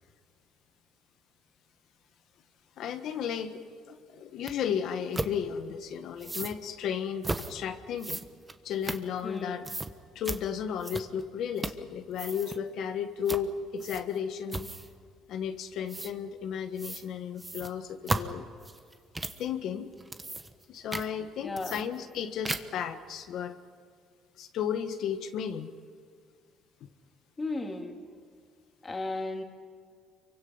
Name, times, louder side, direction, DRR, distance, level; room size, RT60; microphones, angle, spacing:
voice 1, 2.8-8.2 8.6-9.6 10.1-14.7 15.3-18.5 19.4-19.9 20.7-23.5 24.4-25.7, left 8 dB, 60° left, 8 dB, 1.4 m, -34 dB
sound 1, 4.5-4.6 5.1-5.3 6.2-6.6 7.2-7.5 8.0-9.4 9.6-9.9 10.2-10.4 10.8-11.2 11.6-11.9 12.1-12.6 13.3-13.5 13.8-14.2 14.5-14.9 15.9-16.1 16.8-17.1 17.4-19.4 19.9-20.6 20.9-21.1 21.6-22.2 22.4-22.8, right 2 dB, 15° right, 1.2 m, -35 dB
voice 2, 9.2-9.7 21.4-21.8 27.4-28.0 28.8-29.4, left 2 dB, 20° left, 3 dB, 2.5 m, -35 dB
29.0 x 24.0 x 5.6 m, 2.1 s
cardioid pair, 125°, 0 cm